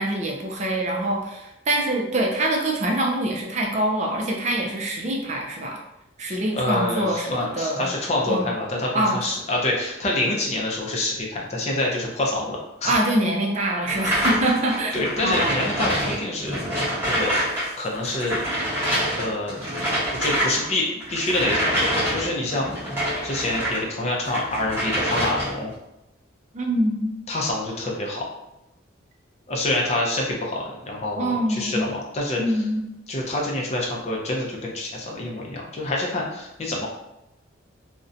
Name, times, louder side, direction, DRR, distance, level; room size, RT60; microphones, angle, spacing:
voice 1, 0.0-5.8 6.2-7.9 8.3-8.5 8.9-9.2 12.8-15.0 15.2-15.6 26.5-27.1 31.2-31.9 32.4-32.9, right 1 dB, 35° right, 0 dB, 0.3 m, -24 dB
voice 2, 6.6-12.9 14.9-16.6 17.1-17.3 17.8-18.4 19.2-19.6 20.2-22.7 23.2-25.7 27.3-28.2 29.5-32.4 33.1-36.9, left 1 dB, 30° left, -2 dB, 0.4 m, -26 dB
sound 1, 13.9-17.7 17.9-23.8 24.2-25.7, equal, 10° right, 0.9 m, -26 dB
2.5 x 2.1 x 2.6 m, 0.90 s
head